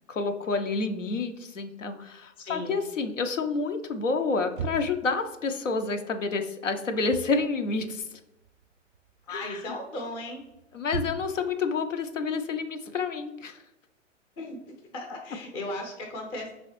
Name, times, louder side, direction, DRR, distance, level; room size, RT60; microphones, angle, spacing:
voice 1, 0.1-8.2 9.3-9.8 10.7-13.6, left 4 dB, 75° left, 7 dB, 0.6 m, -29 dB
voice 2, 2.4-2.8 9.3-10.4 14.4-14.6 14.9-16.5, left 1 dB, 15° left, 2 dB, 0.5 m, -36 dB
sound 1, 4.5-5.1 6.9-7.4 7.7-8.6 8.9-9.4 10.0-11.5, right 6 dB, 45° right, 0.5 m, -37 dB
5.2 x 3.1 x 3.0 m, 0.92 s
figure-of-eight pair, 110°, 38 cm